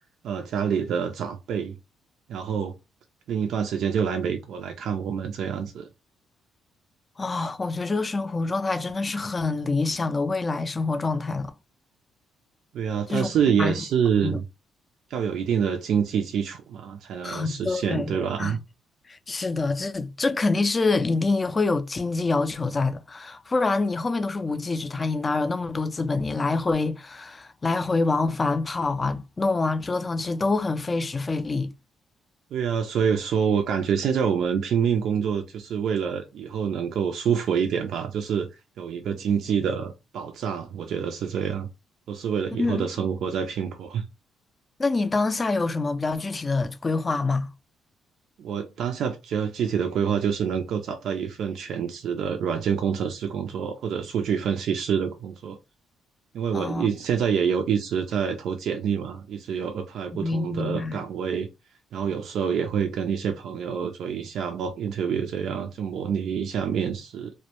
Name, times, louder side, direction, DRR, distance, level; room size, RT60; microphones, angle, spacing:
voice 1, 0.2-1.7 2.3-2.7 3.3-5.9 12.7-14.4 15.1-18.6 32.5-38.5 38.8-41.7 42.1-44.1 48.4-55.6 56.3-61.5 61.9-67.3, right 7 dB, 70° right, 0.3 m, -27 dB
voice 2, 7.2-11.5 13.1-13.3 13.6-13.8 14.2-14.4 17.2-18.6 19.1-31.7 42.6-42.9 44.8-47.5 56.5-56.9 60.1-61.0, left 3 dB, 30° left, 0.3 m, -26 dB
2.1 x 2.1 x 2.8 m
supercardioid pair, 70°, 0 cm